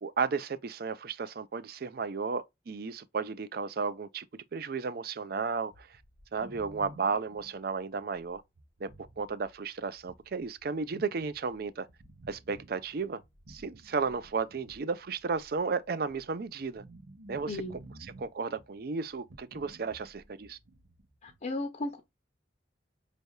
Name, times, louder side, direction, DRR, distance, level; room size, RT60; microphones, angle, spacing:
voice 1, 0.0-5.9 6.3-8.4 8.8-11.9 12.3-13.2 13.5-16.8 17.3-20.6, right 5 dB, 60° right, 0.5 m, -34 dB
sound 1, 5.7-21.4, right 1 dB, 85° right, 1.0 m, -54 dB
voice 2, 17.5-17.8 21.2-22.0, left 2 dB, 45° left, 0.6 m, -35 dB
5.3 x 3.4 x 2.2 m
head